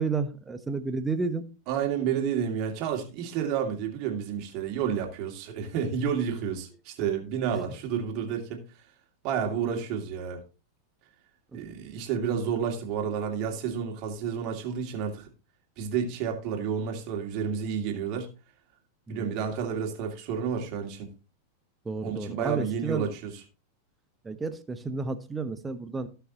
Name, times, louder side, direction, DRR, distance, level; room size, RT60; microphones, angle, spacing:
voice 1, 0.0-1.5 11.5-11.6 19.1-19.3 21.8-23.1 24.2-26.1, right 4 dB, 15° right, 1.0 m, -31 dB
voice 2, 1.7-8.6 9.2-10.4 11.5-15.3 15.8-18.3 19.1-21.1 22.0-23.3, right 7 dB, 40° right, 2.5 m, -30 dB
17.0 x 5.7 x 2.9 m
figure-of-eight pair, 90°, 0 cm